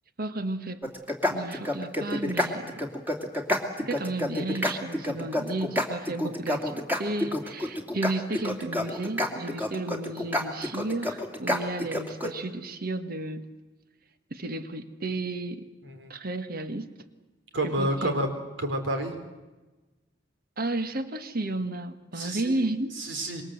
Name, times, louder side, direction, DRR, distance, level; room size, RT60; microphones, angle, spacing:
voice 1, 0.2-0.8 1.3-2.9 3.8-13.5 14.3-15.7 16.1-16.9 17.6-18.2 20.6-23.0, right 2 dB, 50° right, 10 dB, 1.6 m, -33 dB
sound 1, 0.8-12.3, left 1 dB, 10° right, 2.6 m, -28 dB
voice 2, 17.5-18.3 18.6-19.2 22.2-22.6 23.0-23.4, right 1 dB, 80° right, 6 dB, 4.1 m, -29 dB
26.5 x 22.5 x 7.9 m, 1.2 s
head